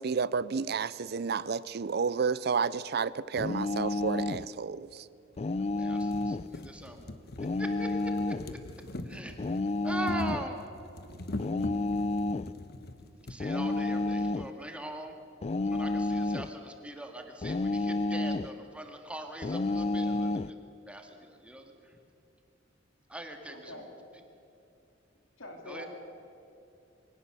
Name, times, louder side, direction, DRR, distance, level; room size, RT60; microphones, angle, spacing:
voice 1, 0.0-4.9, right 5 dB, 55° right, 0.5 m, -31 dB
sound 1, 3.4-4.5 5.4-6.5 7.4-8.5 9.4-10.5 11.4-12.5 13.4-14.5 15.4-16.5 17.4-18.5 19.4-20.5, left 2 dB, 35° left, 0.4 m, -30 dB
sound 2, 3.8-3.9 4.9-5.0 5.4-5.5 5.8-13.4 14.3-14.4 14.7-14.8, left 1 dB, 55° left, 1.1 m, -43 dB
voice 2, 5.6-7.1 7.6-8.4 9.0-10.7 13.3-15.1 15.7-20.6 20.9-22.0 23.1-23.8 25.6-25.9, right 1 dB, 5° right, 2.0 m, -41 dB
voice 3, 23.5-23.9 25.4-25.9, left 2 dB, 90° left, 3.8 m, -44 dB
23.0 x 17.5 x 6.9 m
head